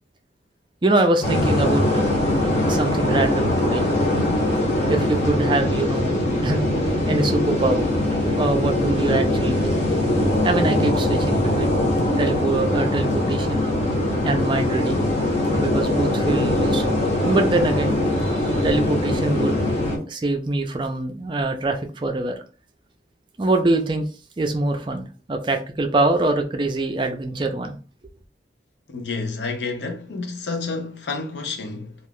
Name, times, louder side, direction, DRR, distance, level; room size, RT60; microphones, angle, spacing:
voice 1, 0.8-2.1 2.6-3.8 4.9-6.2 6.4-6.7 7.1-7.9 8.3-9.7 10.4-11.7 12.2-13.7 14.2-15.0 15.5-16.8 17.3-19.6 20.1-22.3 23.4-24.0 24.4-25.0 25.3-27.8, right 2 dB, 25° right, 0.4 m, -23 dB
sound 1, 1.2-20.0, left 1 dB, 40° left, 0.9 m, -22 dB
voice 2, 28.9-32.0, left 4 dB, 75° left, 0.6 m, -29 dB
2.4 x 2.3 x 3.5 m
head